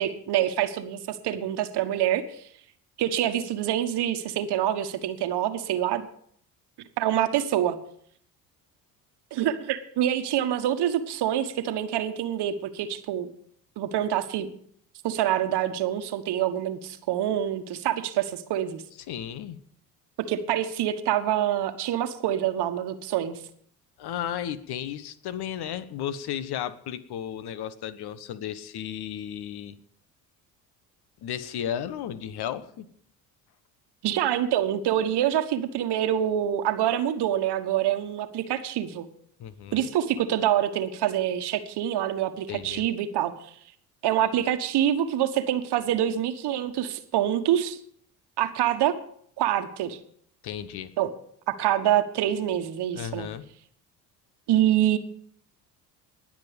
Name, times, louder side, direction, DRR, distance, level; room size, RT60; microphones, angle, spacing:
voice 1, 0.0-2.4 3.0-6.1 7.0-7.8 9.3-13.3 13.8-14.5 15.0-18.8 20.2-23.4 34.0-39.1 39.7-43.5 44.0-47.8 48.4-48.9 49.4-50.0 51.0-51.1 51.5-53.3 54.5-55.0, right 11 dB, 55° right, 9 dB, 1.4 m, -26 dB
voice 2, 19.1-19.6 24.0-29.8 31.2-32.9 39.4-39.9 42.5-42.9 50.4-50.9 52.9-53.5, left 10 dB, 55° left, 15 dB, 1.2 m, -34 dB
20.0 x 7.5 x 5.1 m, 0.64 s
hypercardioid pair, 55°, 48 cm